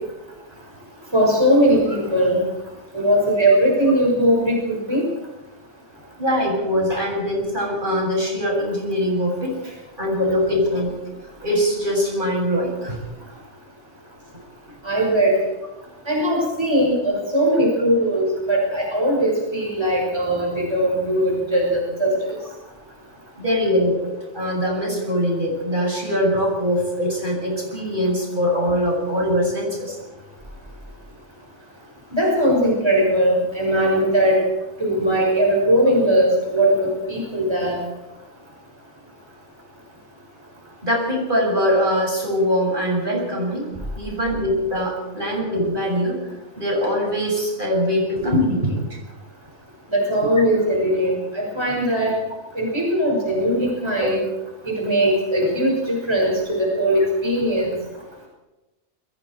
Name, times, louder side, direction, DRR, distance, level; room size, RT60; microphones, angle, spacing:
voice 1, 1.1-2.4 2.9-5.0 14.8-15.4 16.1-22.2 32.1-34.4 34.8-37.8 49.9-52.1 52.6-54.2 54.6-57.8, equal, 20° right, -2 dB, 6.0 m, -19 dB
voice 2, 6.2-9.6 10.0-10.9 11.4-13.0 23.4-30.0 40.8-43.7 44.0-46.2 46.6-48.8, equal, 45° right, -1 dB, 7.5 m, -22 dB
28.5 x 22.5 x 4.6 m, 1.0 s
omnidirectional pair, 1.2 m